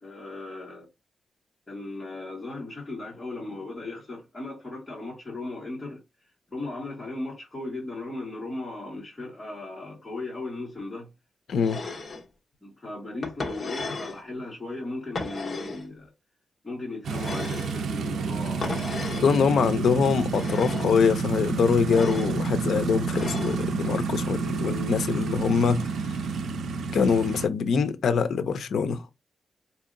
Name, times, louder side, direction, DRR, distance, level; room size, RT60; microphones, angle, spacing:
voice 1, 0.0-0.9 1.7-6.0 6.5-11.1 12.6-16.1 16.6-19.1 19.6-19.9, left 2 dB, 15° left, 1.5 m, -37 dB
voice 2, 11.5-11.8 19.2-25.9 26.9-29.1, left 6 dB, 75° left, 0.5 m, -24 dB
sound 1, 11.6-12.2 13.2-14.2 15.1-15.9 17.1-17.8 18.6-19.3 20.2-20.9 21.8-22.4 23.1-23.6, left 3 dB, 35° left, 0.9 m, -35 dB
sound 2, 17.0-27.5, right 5 dB, 85° right, 0.5 m, -29 dB
4.2 x 2.8 x 2.5 m
wide cardioid pair, 130°, 0 cm